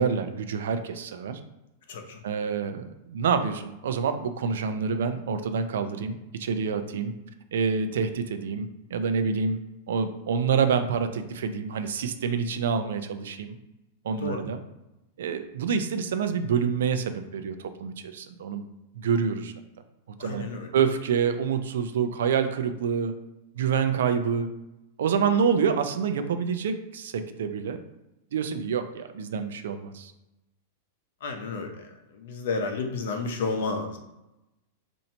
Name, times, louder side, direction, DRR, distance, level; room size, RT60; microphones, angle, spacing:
voice 1, 0.0-1.4 2.2-7.1 7.5-9.6 9.9-13.6 14.0-14.6 15.2-18.6 18.9-19.5 20.2-20.4 20.7-23.1 23.6-24.5 25.0-27.8 28.3-30.1, right 6 dB, 80° right, 8 dB, 0.5 m, -27 dB
voice 2, 1.9-2.2 14.2-14.4 20.2-20.7 31.2-31.9 32.1-34.0, left 4 dB, 65° left, 4 dB, 0.7 m, -31 dB
2.8 x 2.6 x 4.3 m, 0.94 s
supercardioid pair, 165°, 0 cm